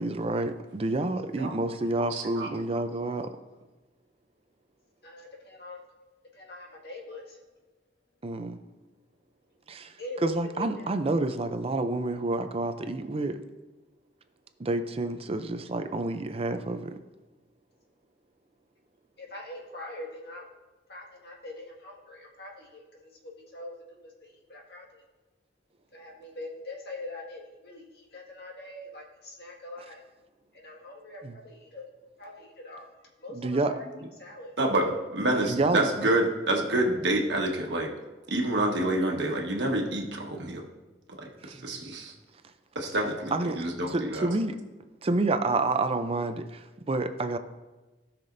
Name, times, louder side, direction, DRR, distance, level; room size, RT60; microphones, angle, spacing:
voice 1, 0.0-3.3 8.2-8.6 9.7-9.9 10.2-13.4 14.6-17.0 31.2-31.4 33.3-33.7 35.5-35.9 41.4-41.7 43.3-44.6 45.0-47.4, right 2 dB, 35° right, 0.5 m, -29 dB
voice 2, 2.1-2.5 34.6-37.9 38.3-40.6 41.2-42.1 42.7-44.3, right 1 dB, 90° right, 1.4 m, -28 dB
voice 3, 5.0-5.8 6.3-7.4 10.0-10.8 19.2-20.4 20.9-25.0 25.9-30.0 30.5-31.9 32.2-32.9 33.2-33.8 34.2-34.5 34.8-34.9, left 2 dB, 65° left, 1.9 m, -43 dB
16.5 x 5.9 x 2.6 m
head